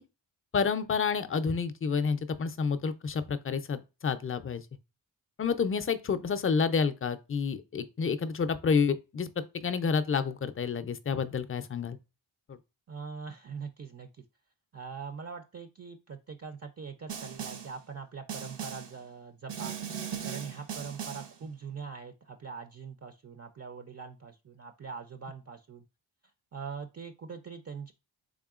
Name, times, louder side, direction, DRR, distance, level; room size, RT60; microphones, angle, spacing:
voice 1, 0.5-4.6 5.4-9.3 9.5-12.0 12.5-12.6, left 5 dB, 30° left, 0.5 m, -29 dB
voice 2, 12.9-14.2 14.7-19.7 20.2-25.8 26.5-27.9, right 5 dB, 35° right, 0.5 m, -42 dB
Snare drum, 17.1-17.8 18.3-19.0 19.5-21.4, right 8 dB, 65° right, 0.8 m, -38 dB
3.7 x 3.5 x 2.4 m
cardioid pair, 55°, 46 cm